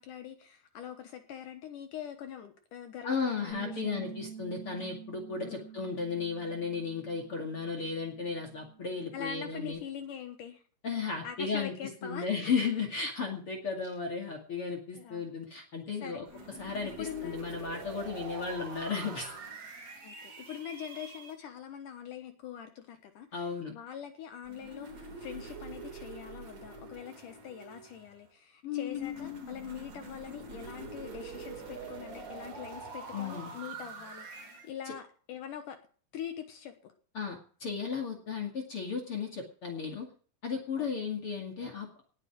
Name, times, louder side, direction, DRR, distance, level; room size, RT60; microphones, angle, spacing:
voice 1, 0.0-4.2 5.4-5.7 9.1-10.6 11.2-12.6 14.9-15.3 16.0-16.5 17.0-17.4 20.0-35.8 36.1-36.9 40.8-41.1, left 9 dB, 70° left, 7 dB, 2.6 m, -43 dB
voice 2, 3.0-9.8 10.8-11.7 12.0-16.2 16.6-19.3 23.3-23.7 28.6-29.5 33.1-33.5 37.1-40.1 40.4-42.0, left 5 dB, 40° left, 2 dB, 2.8 m, -35 dB
Bass guitar, 3.5-9.7, right 7 dB, 25° right, 8.2 m, -48 dB
sound 1, 16.3-21.3 24.4-28.2 28.9-34.7, right 3 dB, 50° right, 4.8 m, -45 dB
19.0 x 8.4 x 6.2 m, 0.43 s
omnidirectional pair, 4.3 m